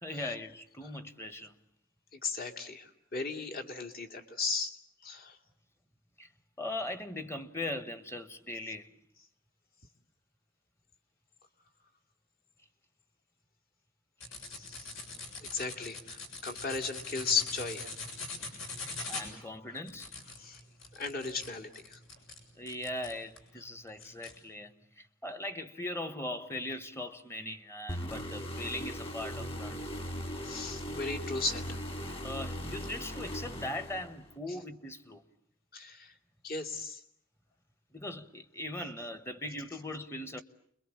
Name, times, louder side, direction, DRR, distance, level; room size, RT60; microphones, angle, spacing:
voice 1, 0.0-1.5 6.2-6.3 6.6-8.9 18.8-20.1 22.5-29.9 32.2-35.2 37.9-40.4, left 1 dB, 15° left, 1.3 m, -40 dB
voice 2, 2.1-5.4 14.5-15.0 15.4-17.9 19.0-19.3 20.4-20.6 20.9-22.0 24.0-24.1 30.4-31.8 35.7-36.1 36.4-37.0, left 4 dB, 50° left, 2.6 m, -36 dB
sound 1, 14.2-23.5 24.0-24.3, left 3 dB, 70° left, 7.0 m, -42 dB
sound 2, 27.9-34.3, equal, 30° left, 2.5 m, -39 dB
30.0 x 22.5 x 8.6 m
head